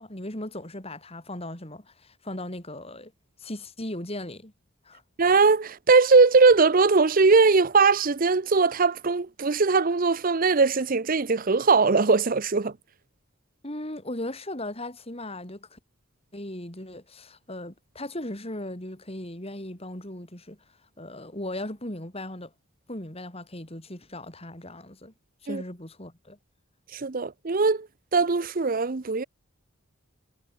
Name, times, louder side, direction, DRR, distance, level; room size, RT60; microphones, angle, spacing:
voice 1, 0.0-3.1 3.4-4.5 4.8-5.0 13.6-15.8 16.3-20.6 21.0-22.5 22.9-25.1 25.4-26.4, left 1 dB, 30° left, 4.8 m, -37 dB
voice 2, 5.2-12.7 25.5-25.6 26.9-27.9 28.1-29.2, right 4 dB, 45° right, 0.7 m, -20 dB
head